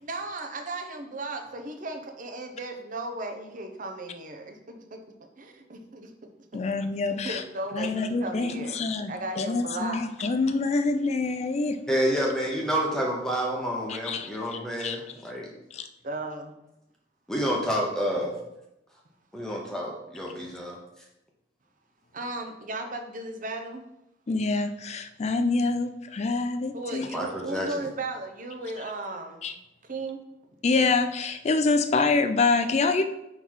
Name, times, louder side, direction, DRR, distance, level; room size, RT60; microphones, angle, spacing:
voice 1, 0.0-5.0 5.4-6.1 7.1-8.8 9.1-10.3 16.0-16.5 22.1-23.9 26.7-29.5 29.9-30.2, right 2 dB, 45° right, 5 dB, 0.8 m, -36 dB
voice 2, 6.5-7.4 7.7-11.8 13.9-15.0 15.7-15.9 24.3-27.1 29.4-29.5 30.6-33.0, left 3 dB, 35° left, 8 dB, 0.4 m, -26 dB
voice 3, 11.9-15.5 17.3-18.3 19.3-20.8 27.1-27.9, equal, 5° left, -2 dB, 0.8 m, -29 dB
5.5 x 3.9 x 4.6 m, 0.86 s
head